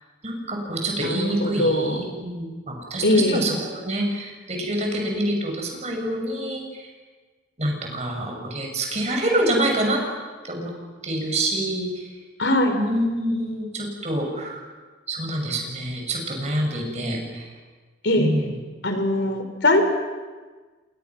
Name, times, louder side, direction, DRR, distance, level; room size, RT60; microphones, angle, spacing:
voice 1, 0.2-6.9 7.6-10.0 10.4-10.7 11.0-12.1 12.7-14.7 15.1-17.5 18.2-18.5, right 1 dB, 35° right, 1 dB, 6.7 m, -26 dB
voice 2, 1.0-2.0 3.0-3.5 12.4-12.8 18.0-18.3 18.8-19.9, left 1 dB, 75° left, 6 dB, 4.1 m, -21 dB
29.5 x 27.5 x 6.1 m, 1.3 s
head